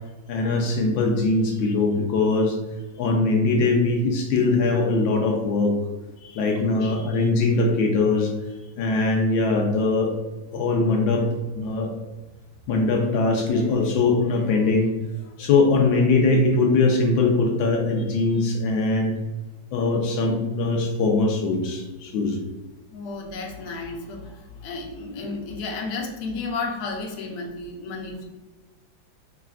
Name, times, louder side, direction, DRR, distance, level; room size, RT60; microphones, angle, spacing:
voice 1, 0.3-2.5 3.0-5.7 6.3-8.3 8.8-10.1 10.5-11.3 11.5-11.9 12.7-14.9 15.4-19.1 19.7-22.4, left 3 dB, 85° left, 0 dB, 1.3 m, -21 dB
voice 2, 6.2-7.2 18.1-18.4 22.9-28.2, left 3 dB, 60° left, 0 dB, 1.2 m, -33 dB
4.8 x 3.2 x 2.4 m, 1.2 s
omnidirectional pair, 2.1 m